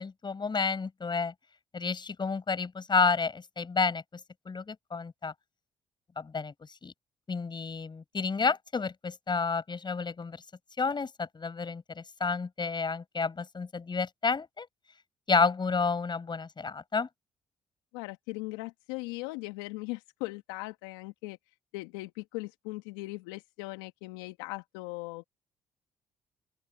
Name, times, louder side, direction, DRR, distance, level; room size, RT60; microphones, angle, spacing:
voice 1, 0.0-1.3 1.7-4.0 4.5-5.3 6.2-6.5 6.8-6.9 7.3-10.4 10.8-14.7 15.3-17.1, left 4 dB, 35° left, 7.0 m, -30 dB
voice 2, 17.9-21.4 21.7-25.2, left 22 dB, 85° left, 1.6 m, -39 dB
open air
hypercardioid pair, 50°, 13 cm